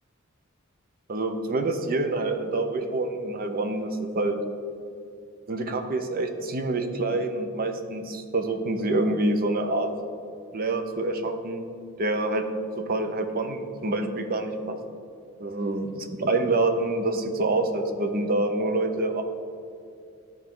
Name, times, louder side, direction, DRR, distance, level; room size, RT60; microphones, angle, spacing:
voice 1, 1.1-4.4 5.5-9.9 10.5-11.7 12.0-12.5 12.8-14.8 15.4-19.2, right 2 dB, 45° right, 6 dB, 0.7 m, -26 dB
12.0 x 4.6 x 3.8 m, 2.5 s
head